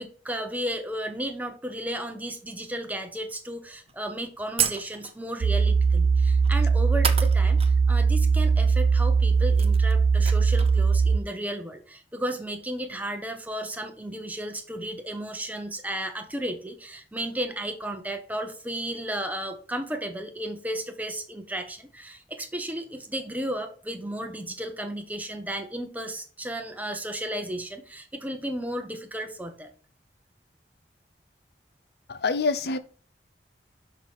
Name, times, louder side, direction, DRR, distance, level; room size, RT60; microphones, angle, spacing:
voice 1, 0.0-29.7, right 1 dB, 10° right, 1.0 m, -34 dB
sound 1, 3.9-4.0 4.6-5.3 6.4-6.6 7.0-7.7 8.0-8.1 9.1-9.2 9.4-10.8, right 8 dB, 35° right, 0.6 m, -30 dB
sound 2, 5.4-11.2, right 5 dB, 85° right, 0.4 m, -20 dB
voice 2, 32.1-32.8, left 4 dB, 65° left, 0.5 m, -26 dB
5.9 x 5.8 x 4.5 m
head